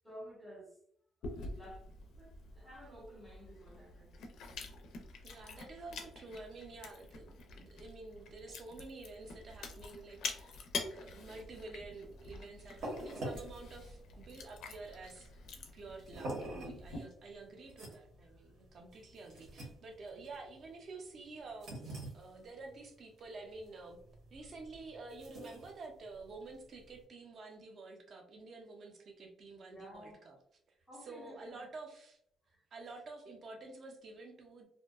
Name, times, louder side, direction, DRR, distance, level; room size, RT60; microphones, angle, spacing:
voice 1, 0.0-0.8 1.2-1.8 2.1-4.3 29.7-30.2 30.9-31.7 32.5-32.6, equal, ahead, -4 dB, 0.7 m, -53 dB
Chewing mastication, 1.2-17.0, left 4 dB, 65° left, 0.4 m, -47 dB
voice 2, 5.2-10.6 10.9-15.3 15.7-24.0 24.3-30.4 31.0-32.2 32.7-34.7, right 3 dB, 35° right, 2 dB, 0.5 m, -50 dB
sound 1, 12.1-27.0, right 1 dB, 60° right, 0.8 m, -48 dB
2.6 x 2.2 x 2.2 m, 0.69 s
cardioid pair, 180°, 0 cm